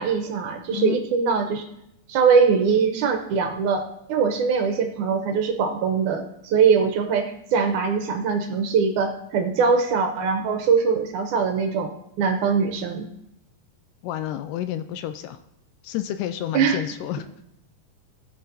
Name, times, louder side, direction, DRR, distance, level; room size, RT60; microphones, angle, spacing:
voice 1, 0.0-1.6 2.1-13.1 16.5-16.8, right 5 dB, 75° right, 5 dB, 2.0 m, -22 dB
voice 2, 14.0-15.4 15.8-17.3, left 12 dB, 80° left, 10 dB, 2.0 m, -30 dB
17.5 x 5.9 x 2.7 m, 0.83 s
omnidirectional pair, 4.0 m